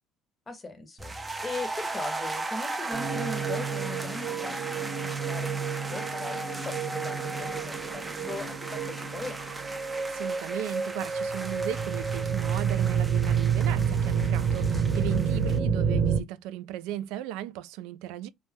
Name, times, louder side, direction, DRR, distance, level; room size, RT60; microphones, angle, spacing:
voice 1, 0.5-9.7, left 3 dB, 20° left, 0.7 m, -40 dB
sound 1, 1.0-15.6, right 2 dB, 10° right, 0.4 m, -37 dB
sound 2, 2.9-16.2, right 6 dB, 40° right, 0.9 m, -29 dB
voice 2, 10.1-18.3, right 12 dB, 80° right, 0.3 m, -36 dB
2.3 x 2.1 x 3.2 m
cardioid pair, 145°, 0 cm